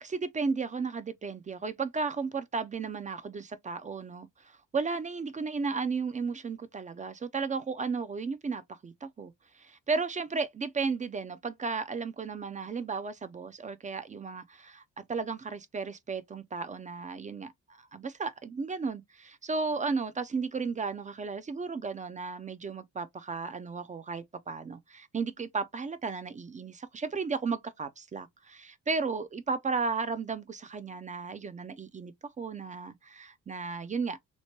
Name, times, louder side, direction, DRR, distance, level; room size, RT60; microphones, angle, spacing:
voice 1, 0.0-34.2, right 4 dB, 25° right, 0.4 m, -34 dB
2.9 x 2.1 x 2.8 m
cardioid pair, 90°, 30 cm